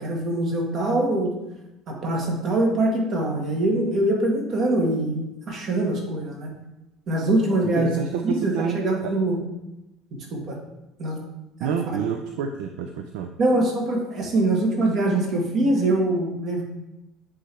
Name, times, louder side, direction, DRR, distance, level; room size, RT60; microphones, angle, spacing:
voice 1, 0.0-1.3 1.9-6.5 7.1-8.0 8.2-9.4 10.3-10.6 11.0-11.2 11.6-12.0 13.4-16.6, right 1 dB, 45° right, 1 dB, 1.4 m, -23 dB
voice 2, 7.6-9.1 11.6-13.3, right 7 dB, 60° right, 5 dB, 0.4 m, -29 dB
8.3 x 3.4 x 3.4 m, 0.94 s
figure-of-eight pair, 60°, 0 cm